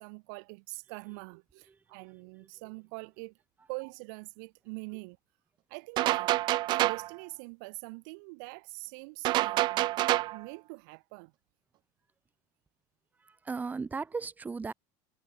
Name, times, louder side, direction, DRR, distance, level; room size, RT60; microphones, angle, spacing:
voice 1, 0.0-3.3 3.7-5.2 5.7-6.4 6.7-11.3, right 33 dB, 70° right, 1.4 m, -44 dB
voice 2, 1.7-2.0 13.2-14.7, right 4 dB, 15° right, 2.0 m, -37 dB
sound 1, 6.0-7.1 9.2-10.4, right 16 dB, 45° right, 0.6 m, -27 dB
supercardioid pair, 130°, 10 cm